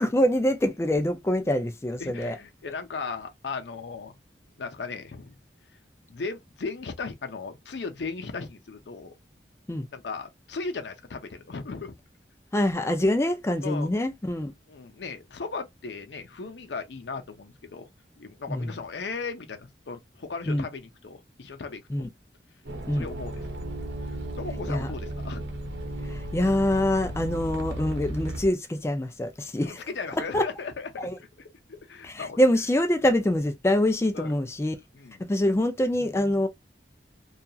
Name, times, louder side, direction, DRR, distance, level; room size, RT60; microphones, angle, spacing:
voice 1, 0.0-2.4 9.7-9.9 12.5-14.5 18.5-18.7 20.5-20.7 21.9-22.1 22.9-23.1 24.7-24.9 26.1-29.8 30.2-30.4 31.0-31.2 32.0-34.7 35.2-36.5, left 1 dB, 15° left, 0.4 m, -25 dB
voice 2, 2.0-4.2 4.6-5.3 6.1-9.1 9.9-12.0 13.6-13.9 14.7-17.9 18.2-22.1 22.9-23.4 24.0-25.4 29.6-31.1 31.4-32.4 34.1-34.3 34.9-35.2, left 4 dB, 75° left, 0.6 m, -37 dB
sound 1, 22.6-28.5, right 1 dB, 85° right, 0.9 m, -35 dB
2.8 x 2.3 x 2.3 m
head